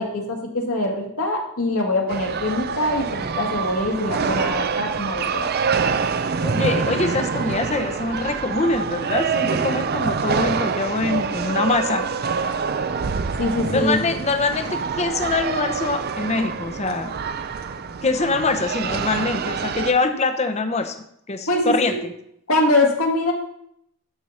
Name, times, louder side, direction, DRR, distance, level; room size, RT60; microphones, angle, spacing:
voice 1, 0.0-5.5 13.4-14.0 21.5-22.0 22.5-23.3, left 2 dB, 75° left, 0 dB, 2.1 m, -23 dB
sound 1, 2.1-19.9, right 5 dB, 45° right, 0.4 m, -26 dB
voice 2, 6.4-12.1 13.7-17.1 18.0-20.9 21.3-22.1, left 3 dB, 30° left, 8 dB, 0.8 m, -24 dB
11.5 x 4.6 x 5.6 m, 0.73 s
head